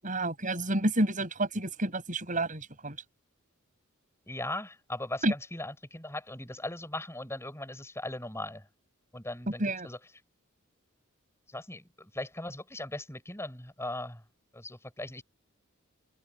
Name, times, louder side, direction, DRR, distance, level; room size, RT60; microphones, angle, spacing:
voice 1, 0.0-3.0 5.2-5.3 9.6-9.9, right 1 dB, 35° right, 8.0 m, -29 dB
voice 2, 4.3-8.6 9.1-10.0 11.5-14.2 14.5-15.2, left 1 dB, 10° left, 6.5 m, -39 dB
open air
head